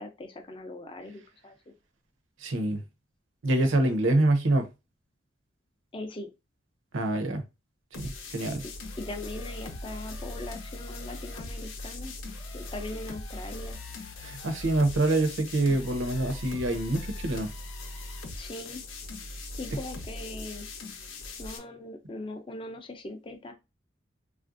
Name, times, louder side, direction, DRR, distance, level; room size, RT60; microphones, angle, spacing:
voice 1, 0.0-1.7 5.9-6.3 8.6-12.1 12.5-13.8 18.4-18.8 19.5-20.7 21.4-23.5, left 2 dB, 25° left, 0.4 m, -40 dB
voice 2, 2.4-2.8 3.4-4.7 6.9-7.4 8.0-8.6 14.2-17.5, right 2 dB, 75° right, 0.6 m, -26 dB
sound 1, 7.9-21.6, left 2 dB, 85° left, 0.7 m, -40 dB
3.2 x 2.4 x 2.5 m
head